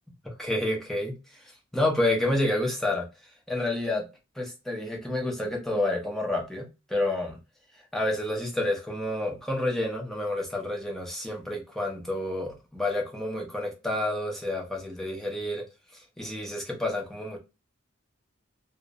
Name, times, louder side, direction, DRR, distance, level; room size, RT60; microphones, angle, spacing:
voice 1, 0.2-3.1 3.5-4.1 4.4-7.4 7.9-15.7 15.9-17.4, left 1 dB, ahead, 0.5 m, -29 dB
2.5 x 2.0 x 2.5 m
head